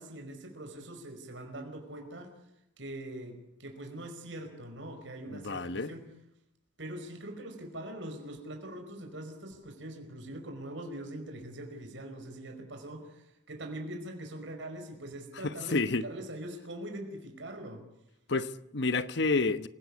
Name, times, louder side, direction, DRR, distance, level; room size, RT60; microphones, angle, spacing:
voice 1, 0.0-2.3 2.8-6.1 6.8-17.9, right 1 dB, 80° right, 5.0 m, -42 dB
voice 2, 5.3-5.9 15.4-16.0 18.3-19.7, left 3 dB, 65° left, 1.1 m, -29 dB
27.0 x 18.0 x 8.5 m
head